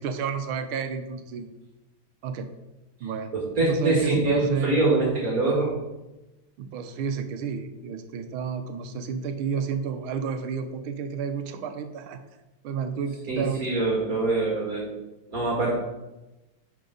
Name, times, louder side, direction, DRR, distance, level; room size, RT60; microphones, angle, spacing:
voice 1, 0.0-1.5 2.2-2.5 3.0-3.3 3.6-4.8 6.6-12.2 12.6-13.7, right 6 dB, 80° right, 8 dB, 1.6 m, -31 dB
voice 2, 3.3-5.7 13.3-14.9 15.3-15.8, right 2 dB, 45° right, -3 dB, 2.1 m, -24 dB
10.5 x 5.7 x 3.9 m, 1.0 s
omnidirectional pair, 2.3 m